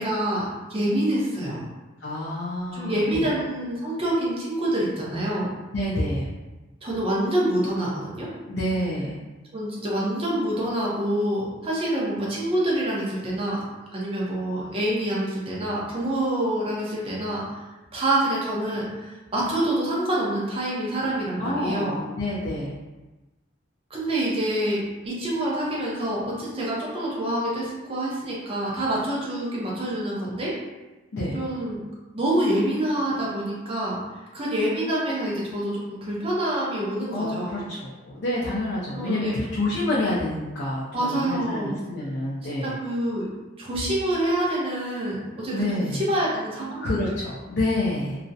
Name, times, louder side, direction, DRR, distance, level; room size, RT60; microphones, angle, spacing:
voice 1, 0.0-1.7 2.7-5.5 6.8-8.3 9.5-13.6 13.9-17.6 17.9-21.9 23.9-30.5 31.3-31.8 32.1-34.0 34.3-37.7 38.9-39.3 40.9-41.8 42.6-43.3 43.6-46.8, right 1 dB, 30° right, -5 dB, 0.6 m, -26 dB
voice 2, 2.0-3.2 5.7-6.3 8.5-9.2 21.4-22.7 31.1-31.4 37.1-42.8 45.5-46.0 46.8-48.2, left 1 dB, 55° left, -7 dB, 0.4 m, -28 dB
2.3 x 2.0 x 2.6 m, 1.1 s
head